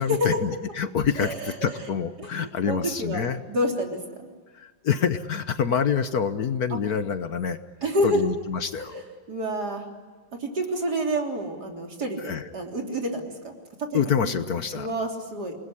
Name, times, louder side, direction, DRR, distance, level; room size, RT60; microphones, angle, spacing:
voice 1, 0.0-3.4 4.5-7.6 8.0-8.9 12.2-12.5 13.9-14.9, left 7 dB, 60° left, 10 dB, 1.4 m, -26 dB
voice 2, 1.2-1.9 2.2-3.2 3.5-4.3 7.8-8.3 8.8-9.0 9.3-9.9 10.4-13.5 13.8-14.0 14.7-15.5, equal, 55° right, 2 dB, 3.9 m, -28 dB
28.5 x 19.5 x 9.9 m, 1.4 s
omnidirectional pair, 2.0 m